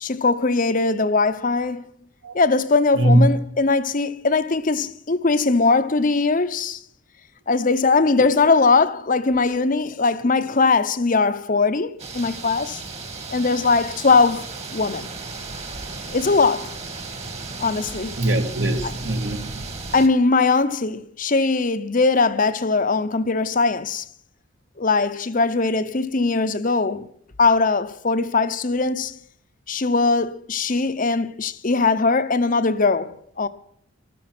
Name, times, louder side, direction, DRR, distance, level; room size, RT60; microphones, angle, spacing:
voice 1, 0.0-1.9 2.3-6.8 7.5-12.8 13.3-15.1 16.1-16.7 17.6-18.2 18.8-18.9 19.9-24.0 24.8-27.1 27.4-29.2 29.7-33.5, left 3 dB, 40° left, 0.8 m, -20 dB
voice 2, 2.9-3.3 18.2-19.6, right 1 dB, 65° right, 2.1 m, -20 dB
sound 1, 12.0-20.1, right 3 dB, 30° right, 1.9 m, -35 dB
13.5 x 13.0 x 6.1 m
head